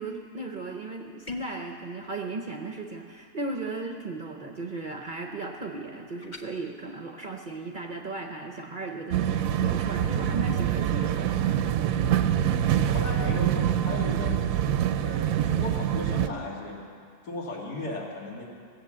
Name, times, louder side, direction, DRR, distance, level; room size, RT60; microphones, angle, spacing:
voice 1, 0.0-12.3, right 2 dB, 45° right, 3 dB, 0.6 m, -36 dB
sound 1, 1.2-1.6 6.2-6.5, left 4 dB, 35° left, 0.9 m, -40 dB
sound 2, 9.1-16.3, right 10 dB, 70° right, 0.9 m, -25 dB
voice 2, 12.0-14.4 15.0-16.8 17.2-18.4, left 2 dB, 90° left, -3 dB, 2.7 m, -36 dB
17.5 x 7.8 x 7.4 m, 2.3 s
omnidirectional pair, 1.7 m